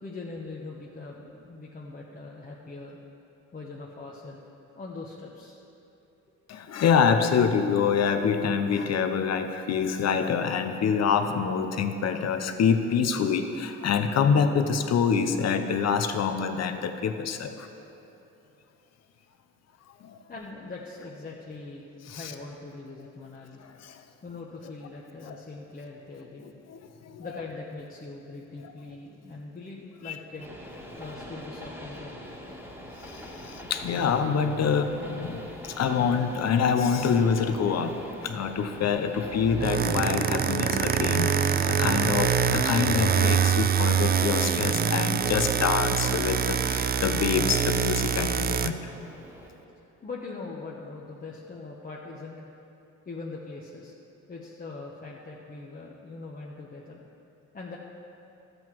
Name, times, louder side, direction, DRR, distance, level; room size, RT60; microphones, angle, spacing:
voice 1, 0.0-3.0 3.5-4.4 4.7-5.6 20.3-23.7 24.2-26.5 27.2-30.6 31.0-32.4 49.7-52.4 53.1-53.9 54.3-57.0 57.5-57.8, left 3 dB, 30° left, -3 dB, 1.0 m, -41 dB
voice 2, 6.5-17.7 20.0-20.2 22.1-22.3 23.8-24.0 25.3-25.4 26.7-27.3 30.0-30.2 33.0-38.0 38.2-48.8, left 6 dB, 60° left, 8 dB, 0.8 m, -26 dB
Train, 30.4-49.5, equal, 5° right, 1.6 m, -43 dB
sound 1, 39.4-48.7, right 7 dB, 30° right, 0.4 m, -25 dB
12.5 x 8.0 x 4.7 m, 2.9 s
cardioid pair, 90°, 30 cm